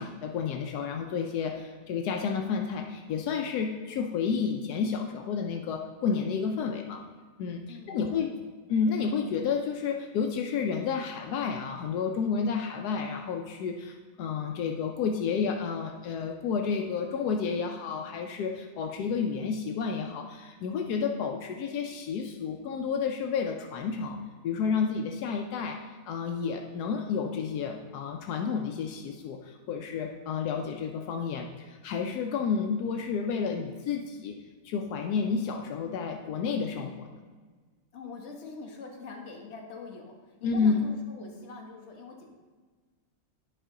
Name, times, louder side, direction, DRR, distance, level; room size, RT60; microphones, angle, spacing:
voice 1, 0.0-7.0 7.4-7.6 7.9-8.3 8.7-34.4 34.6-37.1 40.4-40.8, left 6 dB, 80° left, 3 dB, 1.1 m, -31 dB
voice 2, 7.7-8.3 37.9-42.3, left 4 dB, 45° left, 1 dB, 1.3 m, -44 dB
10.0 x 5.1 x 3.7 m, 1.4 s
omnidirectional pair, 1.7 m